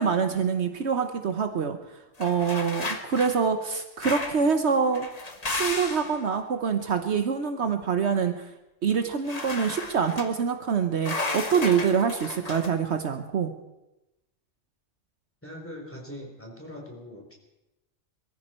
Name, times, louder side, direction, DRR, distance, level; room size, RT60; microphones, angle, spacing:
voice 1, 0.0-1.8 2.2-5.1 5.5-8.5 8.8-13.5, right 6 dB, 65° right, 7 dB, 1.2 m, -25 dB
sound 1, 2.2-3.4 4.0-4.5 4.9-6.2 9.3-10.3 11.0-12.7, left 3 dB, 35° left, 1.4 m, -33 dB
voice 2, 15.4-17.3, left 1 dB, 10° left, -1 dB, 3.8 m, -41 dB
22.5 x 14.0 x 4.4 m, 0.96 s
omnidirectional pair, 1.3 m